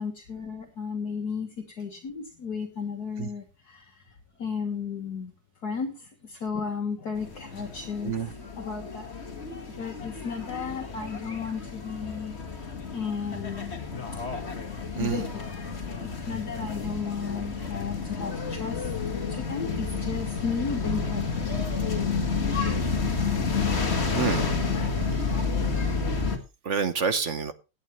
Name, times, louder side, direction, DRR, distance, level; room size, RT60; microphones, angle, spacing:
voice 1, 0.0-4.0 4.4-5.3 5.6-8.1 8.6-9.1 9.8-12.4 12.9-13.7 15.0-15.8 16.0-18.9 19.3-21.5, left 5 dB, 55° left, 2.0 m, -34 dB
sound 1, 7.2-26.4, left 4 dB, 35° left, 2.0 m, -30 dB
voice 2, 24.1-24.5 26.6-27.5, right 6 dB, 50° right, 1.1 m, -27 dB
17.0 x 10.0 x 3.1 m
omnidirectional pair, 2.1 m